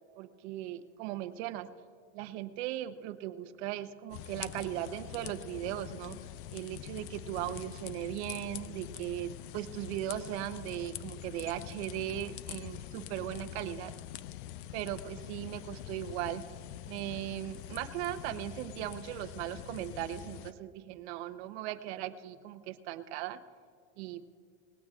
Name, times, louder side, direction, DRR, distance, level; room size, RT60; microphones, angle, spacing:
voice 1, 0.2-1.7 2.1-6.2 6.5-13.9 14.7-16.5 16.8-23.4 24.0-24.3, right 13 dB, 60° right, 10 dB, 0.9 m, -38 dB
sound 1, 4.1-20.5, left 12 dB, 50° left, 0.4 m, -45 dB
19.5 x 17.5 x 2.4 m, 2.3 s
supercardioid pair, 145°, 37 cm